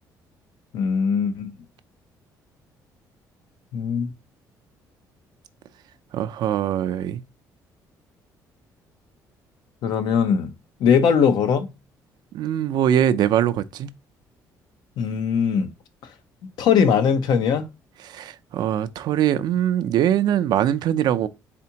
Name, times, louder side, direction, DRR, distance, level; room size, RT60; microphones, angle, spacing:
voice 1, 0.7-1.5 3.7-4.1 9.8-10.5 10.8-11.7 15.0-15.7 16.6-17.6, left 7 dB, 75° left, 0.8 m, -20 dB
voice 2, 6.1-7.2 12.3-13.9 18.0-21.3, right 10 dB, 70° right, 0.4 m, -22 dB
4.2 x 3.6 x 2.8 m
cardioid pair, 85°, 8 cm